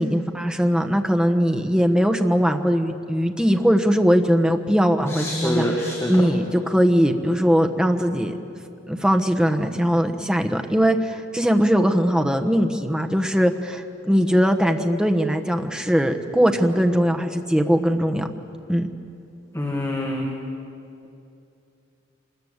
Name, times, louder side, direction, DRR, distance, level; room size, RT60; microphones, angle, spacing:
voice 1, 0.0-8.4 8.9-18.3 18.7-18.9, equal, 5° right, 4 dB, 1.1 m, -20 dB
voice 2, 5.1-6.1 19.5-20.3, left 1 dB, 15° left, -1 dB, 2.1 m, -25 dB
25.5 x 21.0 x 8.1 m, 2.6 s
head